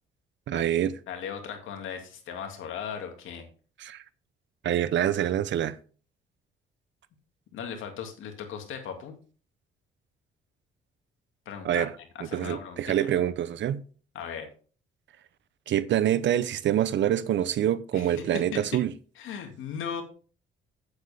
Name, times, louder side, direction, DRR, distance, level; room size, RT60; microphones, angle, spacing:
voice 1, 0.5-0.9 3.8-4.0 4.6-5.8 11.6-11.9 12.2-13.8 15.7-18.9, right 11 dB, 65° right, 0.7 m, -26 dB
voice 2, 1.1-3.5 7.5-9.2 11.5-12.9 14.1-14.5 17.9-18.6 19.2-20.0, left 7 dB, 80° left, 2.3 m, -37 dB
8.7 x 7.9 x 3.5 m
cardioid pair, 90°, 20 cm